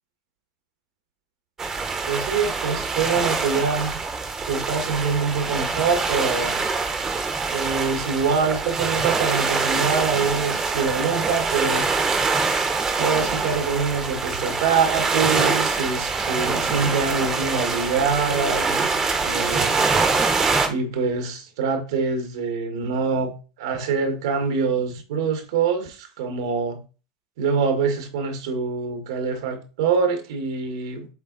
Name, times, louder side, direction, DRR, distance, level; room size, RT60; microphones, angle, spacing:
sound 1, 1.6-20.7, right 4 dB, 20° right, 1.0 m, -24 dB
voice 1, 2.0-4.0 4.5-6.6 7.5-11.9 13.0-19.8 20.7-26.8 27.4-31.1, right 5 dB, 85° right, 1.7 m, -25 dB
7.9 x 3.6 x 4.0 m
supercardioid pair, 150°, 3 cm